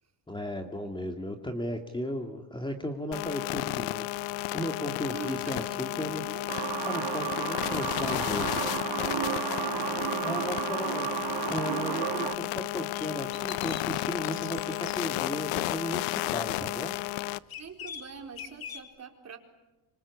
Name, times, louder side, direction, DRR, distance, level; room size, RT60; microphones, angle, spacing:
voice 1, 0.3-4.1 4.5-6.2 6.9-8.8 10.2-11.1 11.5-16.9, left 1 dB, 10° left, 5 dB, 2.3 m, -35 dB
sound 1, 3.1-17.4, left 19 dB, 85° left, 0.9 m, -33 dB
voice 2, 5.0-6.8 9.4-9.6 9.9-10.2 16.2-16.3 16.7-17.0 17.6-19.4, right 6 dB, 30° right, 3 dB, 4.4 m, -45 dB
sound 2, 6.5-12.4, right 12 dB, 50° right, 1.4 m, -33 dB
sound 3, 12.9-15.0 17.5-18.8, left 8 dB, 45° left, 3.3 m, -42 dB
26.5 x 25.5 x 8.3 m, 1.1 s
cardioid pair, 115°, 50 cm